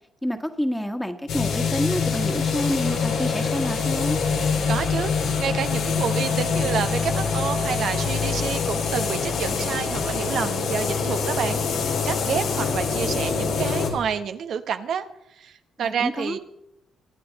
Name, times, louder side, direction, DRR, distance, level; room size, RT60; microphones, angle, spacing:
voice 1, 0.2-4.2 15.8-16.4, equal, 5° left, 6 dB, 1.6 m, -28 dB
sound 1, 1.3-13.9, left 5 dB, 85° left, 3.6 m, -25 dB
voice 2, 4.7-15.1 15.4-16.4, right 7 dB, 65° right, 8 dB, 0.9 m, -29 dB
23.0 x 9.4 x 4.1 m, 0.83 s
cardioid pair, 90°, 0 cm